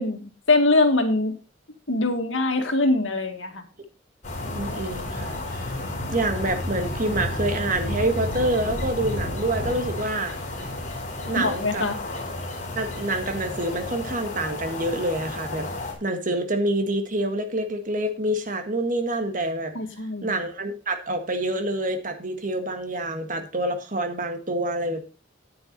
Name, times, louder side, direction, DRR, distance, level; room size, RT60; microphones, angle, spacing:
voice 1, 0.0-1.3 1.9-3.7 11.4-12.0 19.7-20.3, left 2 dB, 80° left, 5 dB, 2.1 m, -23 dB
sound 1, 4.2-15.9, left 1 dB, 40° left, 4.1 m, -32 dB
voice 2, 4.5-5.7 6.1-10.3 11.3-11.9 12.7-15.7 16.0-19.7 20.2-25.0, right 1 dB, 45° right, 6 dB, 1.7 m, -27 dB
9.6 x 9.4 x 4.0 m, 0.31 s
head